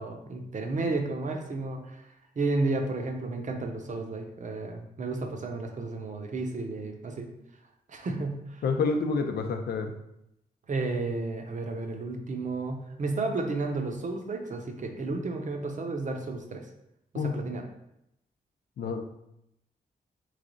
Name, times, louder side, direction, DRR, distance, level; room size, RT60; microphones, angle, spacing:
voice 1, 0.0-2.0 2.4-7.3 7.9-8.6 10.7-16.6 17.1-17.6, right 3 dB, 50° right, 3 dB, 0.7 m, -32 dB
voice 2, 8.6-9.9 17.1-17.3 18.8-19.0, left 4 dB, 85° left, 5 dB, 0.5 m, -28 dB
3.7 x 3.2 x 3.9 m, 0.81 s
wide cardioid pair, 95°, 16 cm